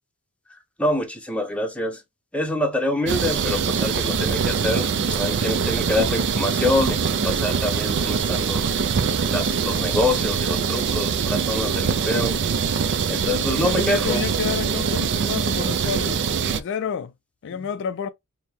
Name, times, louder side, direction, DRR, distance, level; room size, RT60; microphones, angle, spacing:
voice 1, 0.8-2.0 2.3-7.0 7.2-8.6 9.3-12.4 13.1-14.2, left 1 dB, 5° left, 0.7 m, -26 dB
sound 1, 3.1-16.6, right 6 dB, 55° right, 0.4 m, -23 dB
voice 2, 13.1-17.1 17.4-18.1, left 6 dB, 55° left, 0.3 m, -30 dB
4.4 x 2.1 x 3.4 m
head